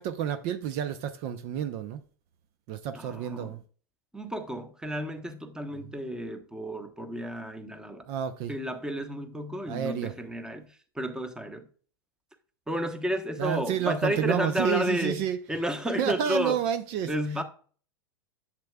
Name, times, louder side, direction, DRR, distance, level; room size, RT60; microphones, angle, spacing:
voice 1, 0.0-2.0 2.7-3.6 8.1-8.5 9.7-10.1 13.4-15.4 16.0-17.1, right 9 dB, 50° right, 0.6 m, -29 dB
voice 2, 2.9-3.6 4.1-8.1 8.5-11.7 12.7-16.6 17.1-17.4, equal, 5° right, 1.0 m, -32 dB
7.4 x 7.4 x 2.3 m
hypercardioid pair, 95°, 12 cm